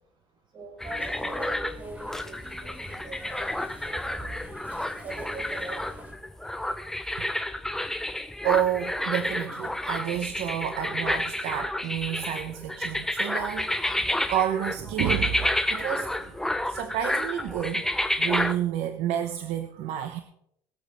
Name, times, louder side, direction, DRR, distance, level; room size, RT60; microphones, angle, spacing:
voice 1, 0.5-2.7 3.0-3.5 3.8-4.5 5.0-5.8, right 2 dB, 45° right, 0 dB, 5.5 m, -41 dB
sound 1, 0.8-18.6, left 1 dB, 5° left, 0.8 m, -30 dB
grocery store, 0.8-6.1, equal, 15° right, 3.5 m, -45 dB
voice 2, 8.4-13.7 14.3-16.3 16.7-17.9 18.2-20.2, right 10 dB, 75° right, 8 dB, 0.9 m, -29 dB
21.0 x 8.0 x 3.5 m, 0.74 s
cardioid pair, 110°, 11 cm